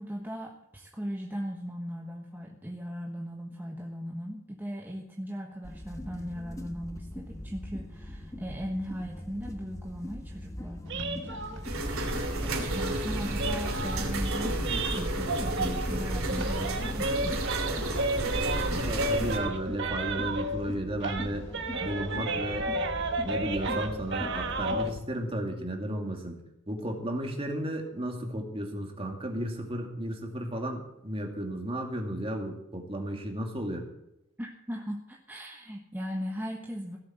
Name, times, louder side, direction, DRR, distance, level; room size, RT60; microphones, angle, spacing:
voice 1, 0.0-12.1 12.4-17.4 34.4-37.0, equal, 10° right, 0 dB, 1.3 m, -38 dB
sound 1, 5.6-25.0, left 1 dB, 15° left, 1.2 m, -41 dB
sound 2, 10.9-16.0 16.2-20.7 21.0-24.9, right 2 dB, 55° right, 1.6 m, -33 dB
sound 3, 11.6-19.4, right 1 dB, 80° right, 2.8 m, -31 dB
voice 2, 18.6-21.5 21.8-22.7 23.2-26.4 26.7-33.9, right 1 dB, 25° right, 2 dB, 2.5 m, -34 dB
17.0 x 7.7 x 8.0 m, 0.85 s
head